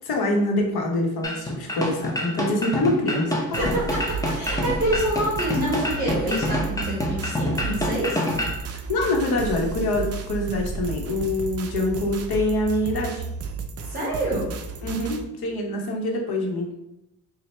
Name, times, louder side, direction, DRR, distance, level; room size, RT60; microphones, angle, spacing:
voice 1, 0.0-3.8 6.7-6.9 8.9-13.2 14.8-16.7, left 1 dB, 75° left, 1 dB, 0.9 m, -25 dB
sound 1, 1.2-8.6, left 1 dB, 10° left, 0.6 m, -27 dB
sound 2, 3.5-15.2, right 5 dB, 40° right, 0.4 m, -33 dB
voice 2, 3.6-4.0 4.2-8.2 13.8-14.5, right 1 dB, 25° right, -6 dB, 1.1 m, -27 dB
4.2 x 2.2 x 3.2 m, 0.88 s
cardioid pair, 90°, 38 cm